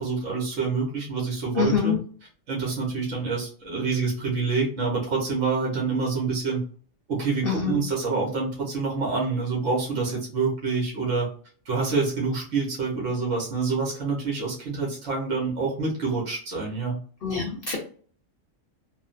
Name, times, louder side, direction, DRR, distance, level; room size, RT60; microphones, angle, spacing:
voice 1, 0.0-2.0 2.5-6.6 7.1-11.3 11.6-17.0, right 4 dB, 75° right, -3 dB, 1.4 m, -27 dB
voice 2, 1.5-2.0 7.4-7.8 17.2-17.8, left 6 dB, 55° left, -1 dB, 0.8 m, -25 dB
3.4 x 2.0 x 2.5 m, 0.44 s
omnidirectional pair, 1.3 m